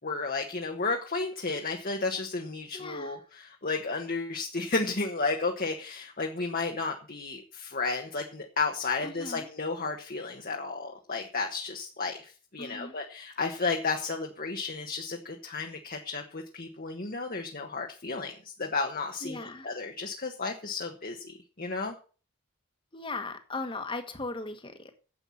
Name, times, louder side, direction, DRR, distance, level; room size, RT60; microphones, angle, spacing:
voice 1, 0.0-21.9, left 4 dB, 40° left, 1.3 m, -33 dB
voice 2, 2.7-3.2 9.0-9.5 12.6-12.9 19.2-19.8 22.9-24.9, left 2 dB, 25° left, 1.5 m, -38 dB
9.9 x 8.1 x 7.2 m
head